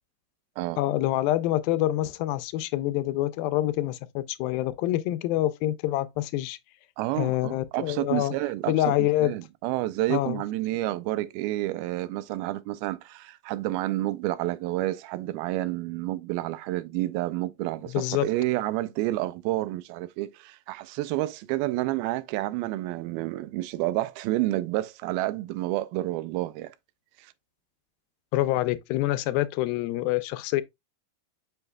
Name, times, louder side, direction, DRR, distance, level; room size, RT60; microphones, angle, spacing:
voice 1, 0.8-6.6 7.2-8.3 8.7-9.3 10.1-10.4 17.9-18.3 28.3-30.6, left 15 dB, 85° left, 2.3 m, -26 dB
voice 2, 7.0-26.8 27.2-27.3, right 16 dB, 85° right, 2.4 m, -29 dB
6.8 x 6.2 x 2.2 m
omnidirectional pair, 4.2 m